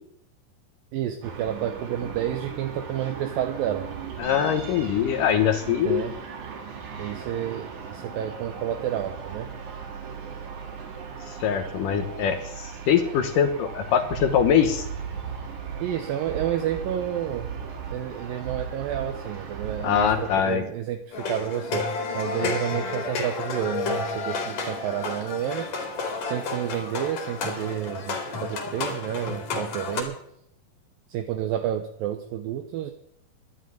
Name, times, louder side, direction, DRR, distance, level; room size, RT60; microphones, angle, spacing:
voice 1, 0.9-3.9 5.9-6.1 7.0-9.5 15.8-17.5 17.9-21.9 22.1-25.7 26.2-30.2 31.1-32.9, right 10 dB, 75° right, 7 dB, 2.3 m, -30 dB
sound 1, 1.2-20.6, right 6 dB, 55° right, 2.9 m, -37 dB
voice 2, 4.2-6.0 11.3-14.9 19.8-20.6 22.4-22.5, left 8 dB, 70° left, 7 dB, 2.2 m, -23 dB
sound 2, 21.1-30.0, left 4 dB, 50° left, 3.1 m, -31 dB
11.5 x 8.6 x 9.7 m, 0.74 s
omnidirectional pair, 4.7 m